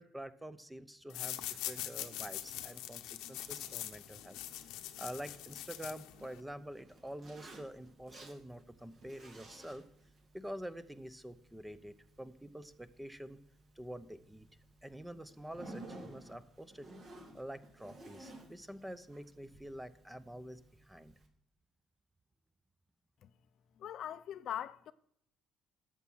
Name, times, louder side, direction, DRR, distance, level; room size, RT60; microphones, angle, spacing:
voice 1, 0.0-4.4 5.0-9.9 10.3-13.4 13.8-14.5 14.8-16.9 17.3-21.1, equal, 5° right, 0.7 m, -47 dB
sound 1, 1.1-6.4, left 13 dB, 85° left, 0.9 m, -43 dB
Zipper (clothing), 3.3-21.3, right 2 dB, 50° right, 2.6 m, -56 dB
voice 2, 23.8-24.9, left 10 dB, 60° left, 0.5 m, -41 dB
11.5 x 7.3 x 6.2 m
cardioid pair, 95°, 0 cm